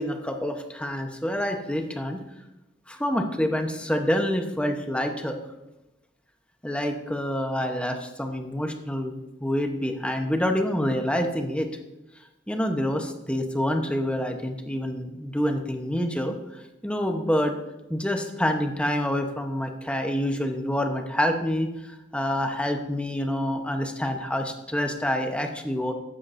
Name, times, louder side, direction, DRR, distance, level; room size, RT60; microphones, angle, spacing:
voice 1, 0.0-2.2 2.9-5.4 6.6-11.7 12.5-17.5 17.9-25.9, equal, 5° left, 4 dB, 1.0 m, -27 dB
14.0 x 9.9 x 2.7 m, 0.98 s
head